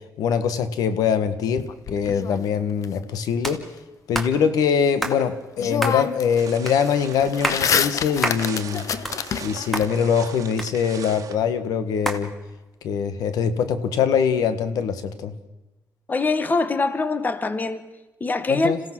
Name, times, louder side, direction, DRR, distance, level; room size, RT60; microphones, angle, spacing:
voice 1, 0.2-1.6 1.9-3.6 4.1-8.9 9.4-12.3 12.8-15.3 18.5-18.8, left 7 dB, 85° left, 1.5 m, -23 dB
sound 1, 1.6-2.9 5.1-5.2 5.6-6.4 6.7-9.9, left 7 dB, 60° left, 0.9 m, -27 dB
sound 2, 3.4-3.6 4.1-4.3 5.0-5.2 5.8-6.0 6.7-6.8 7.3-7.6 8.2-8.4 8.8-9.5 9.7-9.9 10.6-11.1 12.0-12.2, right 1 dB, 5° left, 2.3 m, -27 dB
sound 3, 6.4-11.3, right 8 dB, 60° right, 1.5 m, -39 dB
voice 2, 16.1-17.8 18.2-18.7, left 3 dB, 30° left, 1.4 m, -23 dB
27.0 x 16.5 x 6.1 m
cardioid pair, 100°, 6 cm